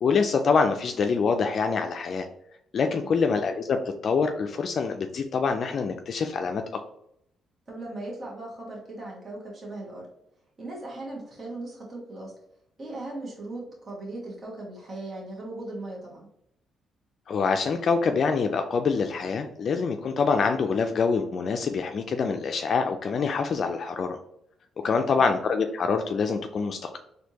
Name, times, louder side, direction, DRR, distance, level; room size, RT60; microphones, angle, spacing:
voice 1, 0.0-2.3 2.7-6.6 17.3-24.2 24.8-27.0, left 5 dB, 55° left, 5 dB, 0.3 m, -25 dB
voice 2, 7.7-10.1 10.6-12.3 12.8-16.3 24.8-25.2, right 2 dB, 35° right, -3 dB, 1.3 m, -38 dB
4.3 x 2.6 x 2.8 m, 0.75 s
cardioid pair, 90°, 0 cm